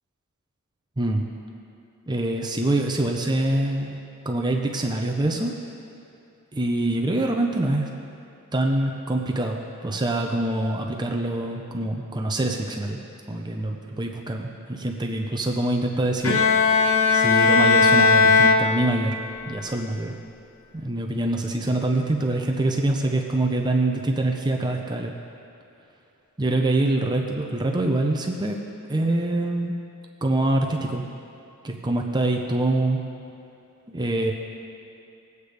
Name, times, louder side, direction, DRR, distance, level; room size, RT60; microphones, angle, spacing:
voice 1, 1.0-1.3 2.1-4.0 4.2-5.5 6.5-7.9 8.5-13.0 13.3-16.4 17.1-19.2 19.5-20.2 20.7-25.1 26.4-28.6 28.9-29.7 30.2-31.1 31.6-33.0 33.9-34.3, right 1 dB, 20° right, 2 dB, 0.6 m, -25 dB
Bowed string instrument, 16.2-19.4, left 4 dB, 65° left, 0.8 m, -18 dB
20.5 x 8.1 x 3.4 m, 2.7 s
head